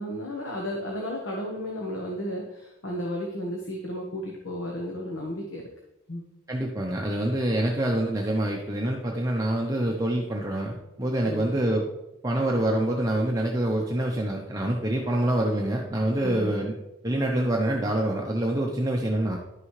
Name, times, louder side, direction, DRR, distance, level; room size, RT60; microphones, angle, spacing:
voice 1, 0.0-5.7 6.1-6.2 11.2-11.6 16.2-16.6, equal, 65° left, -1 dB, 1.2 m, -33 dB
voice 2, 6.5-11.8 12.2-16.7 17.0-19.4, right 1 dB, 15° right, -1 dB, 0.7 m, -26 dB
10.5 x 6.0 x 3.2 m, 0.91 s
head